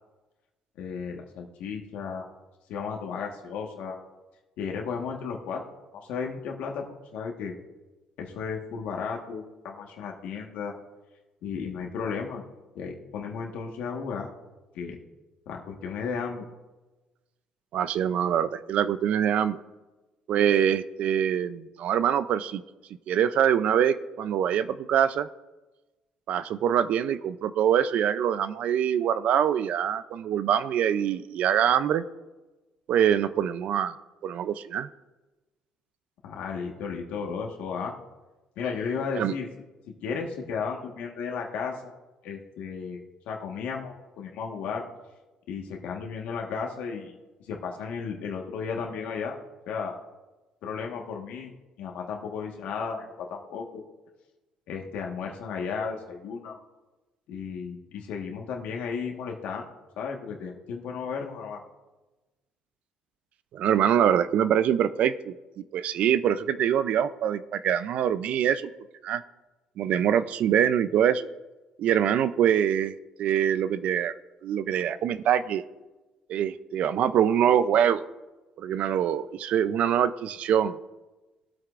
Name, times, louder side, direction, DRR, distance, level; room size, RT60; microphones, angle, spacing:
voice 1, 0.8-2.3 2.7-4.0 4.6-5.6 5.9-6.9 7.1-7.5 8.2-10.7 11.4-12.5 12.7-14.3 14.7-15.0 15.5-16.4 36.2-37.9 38.6-39.5 40.0-41.9 42.2-43.0 43.3-44.8 45.5-47.1 47.4-49.4 49.7-50.0 50.6-53.8 54.7-56.6 57.3-59.7 60.0-61.6, left 6 dB, 80° left, 0 dB, 1.4 m, -34 dB
voice 2, 17.7-19.6 20.3-22.6 23.1-25.3 26.3-32.0 32.9-33.9 34.2-34.9 39.2-39.3 63.5-65.3 65.7-68.7 69.0-69.2 69.8-71.3 71.8-74.1 74.4-75.6 76.3-78.0 78.6-80.7, right 9 dB, 60° right, 13 dB, 0.4 m, -24 dB
20.5 x 8.1 x 2.5 m, 1.1 s
cardioid pair, 125°, 2 cm